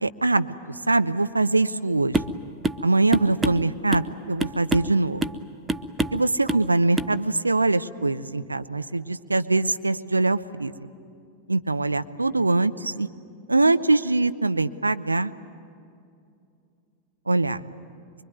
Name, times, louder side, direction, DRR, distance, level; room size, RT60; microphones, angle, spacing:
voice 1, 0.0-0.5 0.9-2.2 2.8-5.2 6.1-10.7 11.5-13.1 13.5-15.3 17.3-17.6, right 2 dB, 80° right, 11 dB, 0.8 m, -23 dB
sound 1, 2.1-2.4 2.6-2.8 3.1-4.1 4.4-4.9 5.2-5.4 5.7-6.2 6.5-6.7 7.0-7.1, right 2 dB, 15° right, 0.9 m, -26 dB
25.0 x 23.0 x 9.4 m, 2.4 s
figure-of-eight pair, 90°, 0 cm